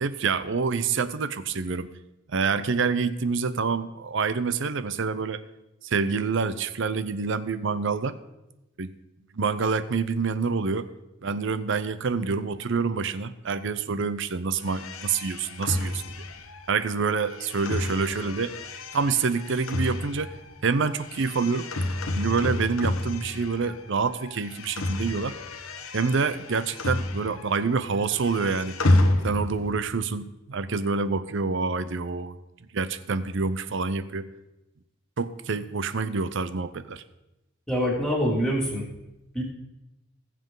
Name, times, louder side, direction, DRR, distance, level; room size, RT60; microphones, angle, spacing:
voice 1, 0.0-1.9 2.3-5.4 5.8-8.2 8.8-8.9 9.3-10.9 11.2-16.0 16.7-18.5 18.9-20.3 20.6-21.7 22.1-25.4 25.9-28.8 29.2-32.4 32.7-34.3 35.2-37.0, right 4 dB, 60° right, 14 dB, 0.6 m, -27 dB
sound 1, 14.6-23.9 24.2-27.6 27.9-29.8, left 1 dB, 85° left, 1.1 m, -30 dB
voice 2, 37.7-38.8 39.3-39.4, equal, 5° left, -4 dB, 2.8 m, -25 dB
20.0 x 7.6 x 3.9 m, 0.98 s
head